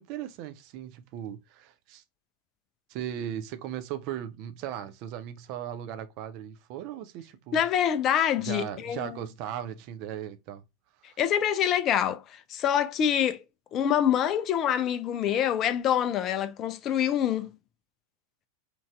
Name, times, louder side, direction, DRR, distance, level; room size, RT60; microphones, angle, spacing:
voice 1, 0.0-2.0 2.9-7.6 8.4-10.6 11.0-11.2, right 10 dB, 45° right, 0.4 m, -37 dB
voice 2, 7.5-9.2 11.2-13.4 13.7-17.5, left 9 dB, 30° left, 0.3 m, -26 dB
3.0 x 2.5 x 2.2 m
figure-of-eight pair, 90°, 0 cm